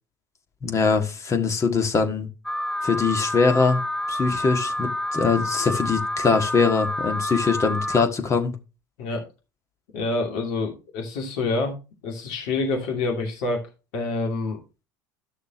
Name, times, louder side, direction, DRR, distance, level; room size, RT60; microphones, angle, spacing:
voice 1, 0.6-2.3 2.8-3.8 4.1-8.6, left 4 dB, 30° left, 1.7 m, -22 dB
Alarm, 2.5-8.0, left 1 dB, 5° left, 0.4 m, -28 dB
voice 2, 9.9-11.7 12.0-13.7 13.9-14.6, left 3 dB, 65° left, 2.6 m, -27 dB
12.0 x 6.4 x 3.0 m
hypercardioid pair, 70°, 11 cm